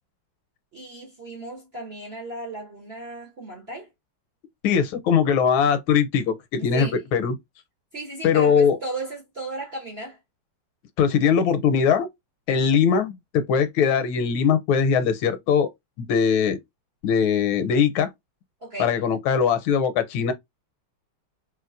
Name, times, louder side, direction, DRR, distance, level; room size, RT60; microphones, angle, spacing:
voice 1, 0.7-3.9 6.6-7.0 7.9-10.2 18.6-19.0, right 2 dB, 50° right, 0.8 m, -35 dB
voice 2, 4.6-7.3 8.2-8.8 11.0-12.1 12.5-15.7 16.0-16.6 17.0-18.1 18.8-20.3, left 7 dB, 80° left, 1.4 m, -21 dB
3.1 x 3.1 x 2.4 m
omnidirectional pair, 2.3 m